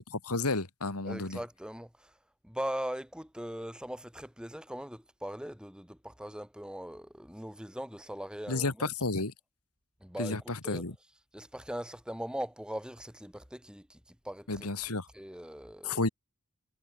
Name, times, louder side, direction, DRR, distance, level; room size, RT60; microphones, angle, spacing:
voice 1, 0.2-1.4 8.5-9.3 10.2-10.9 14.5-15.1 15.8-16.1, left 3 dB, 85° left, 2.4 m, -31 dB
voice 2, 1.0-2.1 2.4-8.9 10.0-10.8 11.3-16.1, equal, 5° right, 3.3 m, -40 dB
head